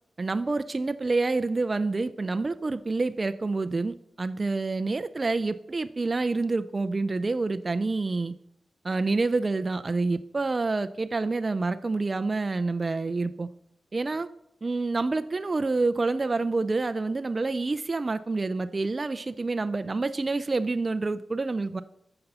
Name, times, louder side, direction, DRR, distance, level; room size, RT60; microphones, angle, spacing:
voice 1, 0.2-8.3 8.8-13.5 13.9-14.3 14.6-21.8, right 3 dB, 25° right, 10 dB, 0.3 m, -27 dB
10.0 x 6.8 x 5.4 m, 0.75 s
wide cardioid pair, 160°, 0 cm